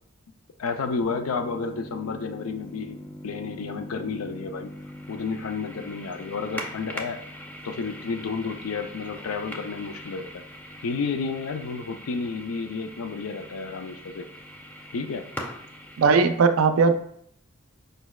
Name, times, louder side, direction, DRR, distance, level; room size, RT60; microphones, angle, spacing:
voice 1, 0.6-3.0 3.2-4.7 5.1-7.2 7.6-10.4 10.8-14.3 14.9-15.2, left 4 dB, 80° left, 9 dB, 0.4 m, -31 dB
sound 1, 1.0-16.1, equal, 10° left, 0.3 m, -41 dB
voice 2, 16.0-16.9, right 5 dB, 75° right, 9 dB, 0.4 m, -18 dB
5.1 x 4.1 x 2.3 m, 0.66 s
head